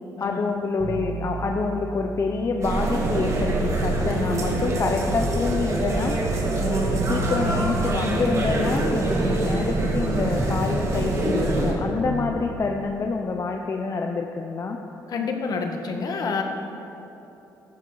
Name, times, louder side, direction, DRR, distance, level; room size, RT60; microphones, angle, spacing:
voice 1, 0.2-6.2 6.6-14.8, left 4 dB, 40° left, 3 dB, 0.8 m, -27 dB
sound 1, 0.8-3.5 3.8-5.8 6.1-9.5 9.8-12.4 12.7-12.8, right 3 dB, 70° right, 1.4 m, -35 dB
sound 2, 2.6-11.7, right 2 dB, 40° right, 2.4 m, -25 dB
voice 2, 15.1-16.4, left 4 dB, 60° left, 3 dB, 1.6 m, -28 dB
14.5 x 12.5 x 4.0 m, 3.0 s
cardioid pair, 80°, 8 cm